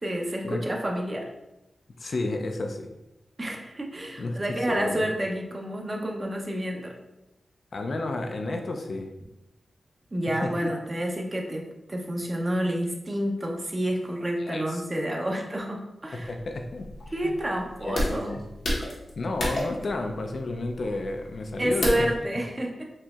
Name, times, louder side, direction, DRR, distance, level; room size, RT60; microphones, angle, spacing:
voice 1, 0.0-1.3 3.4-7.0 10.1-16.3 17.1-18.3 21.6-22.8, right 1 dB, 30° right, 1 dB, 0.7 m, -29 dB
voice 2, 2.0-2.9 4.2-5.0 7.7-9.1 10.4-10.7 14.4-14.8 16.1-16.9 17.2-17.3 17.8-18.4 19.2-22.1, left 2 dB, 65° left, 4 dB, 0.4 m, -31 dB
sound 1, 16.3-22.2, left 1 dB, 80° left, 1.0 m, -32 dB
4.2 x 2.8 x 2.3 m, 0.92 s
wide cardioid pair, 90°, 0 cm